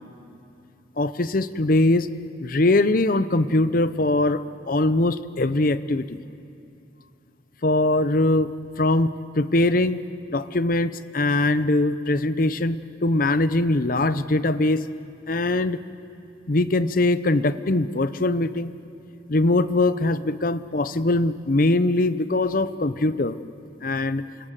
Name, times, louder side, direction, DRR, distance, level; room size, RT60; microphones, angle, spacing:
voice 1, 1.0-2.1 2.4-6.2 7.6-8.5 8.8-9.1 9.4-10.0 10.3-14.9 15.3-15.8 16.5-18.7 19.3-23.4 23.8-24.2, left 2 dB, 50° left, 14 dB, 0.8 m, -22 dB
29.5 x 25.5 x 7.6 m, 2.7 s
head